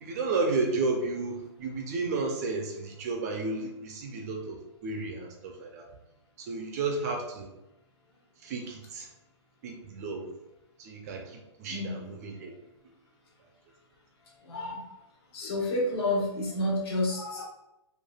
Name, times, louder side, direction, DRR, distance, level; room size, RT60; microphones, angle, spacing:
voice 1, 0.0-5.9 6.4-7.5 8.4-9.1 9.6-10.3 10.8-12.5, right 3 dB, 35° right, 3 dB, 0.4 m, -32 dB
voice 2, 14.4-14.9 15.3-17.4, left 1 dB, 60° left, -3 dB, 1.3 m, -30 dB
3.2 x 2.3 x 2.2 m, 0.88 s
hypercardioid pair, 145°, 15 cm